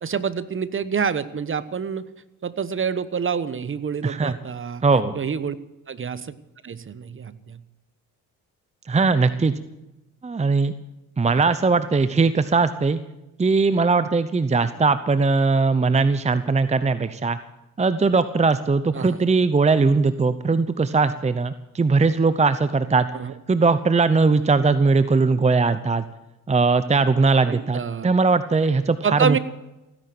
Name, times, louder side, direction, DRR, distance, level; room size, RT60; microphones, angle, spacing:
voice 1, 0.0-2.1 2.4-4.8 5.1-5.6 5.9-6.3 6.6-7.6 11.3-11.4 18.9-19.2 23.1-23.3 27.5-28.1 29.0-29.4, right 6 dB, 35° right, 15 dB, 1.1 m, -27 dB
voice 2, 4.0-4.3 4.8-5.2 8.9-9.5 10.2-10.7 11.2-13.0 13.4-17.4 17.8-23.1 23.5-26.0 26.5-29.4, right 4 dB, 20° right, 13 dB, 0.8 m, -20 dB
16.0 x 10.5 x 7.9 m, 0.99 s
supercardioid pair, 70°, 37 cm